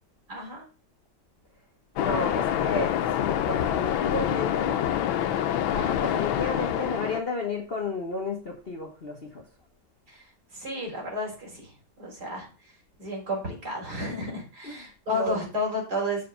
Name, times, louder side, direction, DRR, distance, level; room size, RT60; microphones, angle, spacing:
voice 1, 0.3-0.7 10.1-10.2 10.5-12.5 13.0-16.3, left 1 dB, 55° right, -1 dB, 4.6 m, -32 dB
Waves surf, 2.0-7.2, left 10 dB, 85° left, 1.5 m, -26 dB
voice 2, 2.0-4.9 5.7-9.4 14.6-15.5, left 3 dB, 35° left, 0 dB, 1.3 m, -32 dB
6.6 x 5.1 x 6.9 m, 0.35 s
omnidirectional pair, 2.1 m